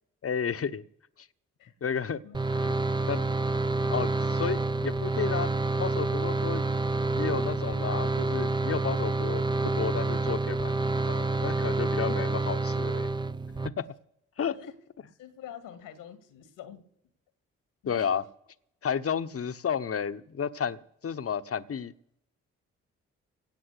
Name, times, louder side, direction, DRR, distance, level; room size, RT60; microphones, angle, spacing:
voice 1, 0.2-0.8 1.2-1.3 1.8-2.2 2.5-2.7 3.1-3.2 3.9-5.5 5.8-6.6 7.2-13.1 13.8-13.9 14.4-14.6 17.9-18.2 18.8-21.9, left 7 dB, 40° left, 11 dB, 1.1 m, -32 dB
sound 1, 2.3-13.7, right 3 dB, 15° right, 0.8 m, -28 dB
voice 2, 12.0-12.3 14.5-14.7 15.2-16.8 17.8-18.2, left 9 dB, 80° left, 12 dB, 2.0 m, -45 dB
17.5 x 7.1 x 8.2 m, 0.78 s
hypercardioid pair, 40°, 34 cm